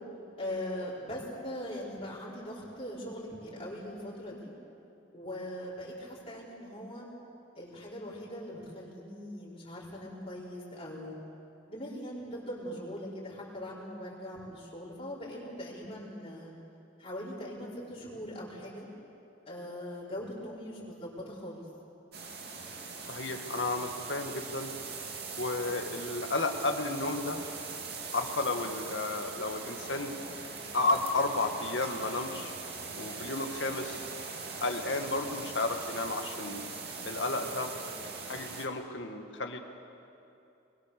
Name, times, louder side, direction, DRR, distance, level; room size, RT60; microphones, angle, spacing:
voice 1, 0.4-4.5 5.1-7.1 7.6-11.2 11.7-16.5 17.0-18.9 19.5-21.6, equal, 35° left, -6 dB, 5.2 m, -41 dB
sound 1, 22.1-38.7, right 4 dB, 60° right, 2.5 m, -41 dB
voice 2, 23.1-24.7 25.4-27.4 28.1-30.1 30.7-32.5 33.0-34.0 34.6-36.6 37.0-37.7 38.3-39.6, left 2 dB, 75° left, 4 dB, 2.0 m, -32 dB
28.5 x 22.0 x 6.9 m, 2.7 s
head